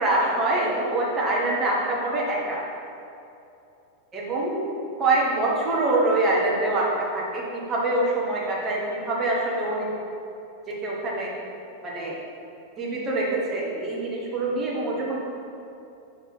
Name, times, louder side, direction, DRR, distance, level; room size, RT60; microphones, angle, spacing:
voice 1, 0.0-2.6 4.1-4.6 5.0-9.9 10.7-11.3 11.8-12.2 12.8-15.2, right 2 dB, 25° right, -4 dB, 1.3 m, -25 dB
5.6 x 4.0 x 4.3 m, 2.7 s
figure-of-eight pair, 90°, 0 cm